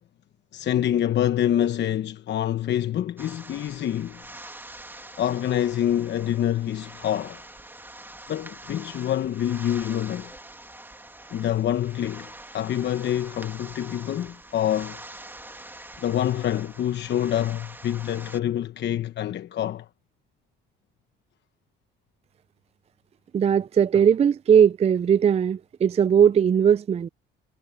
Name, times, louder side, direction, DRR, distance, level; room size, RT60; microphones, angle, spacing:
voice 1, 0.5-4.2 5.2-7.4 8.3-10.3 11.3-15.0 16.0-19.9, left 11 dB, 55° left, 1.0 m, -26 dB
sound 1, 3.2-18.4, right 1 dB, 10° right, 1.9 m, -44 dB
voice 2, 23.3-27.1, right 8 dB, 30° right, 0.4 m, -19 dB
supercardioid pair, 80°, 21 cm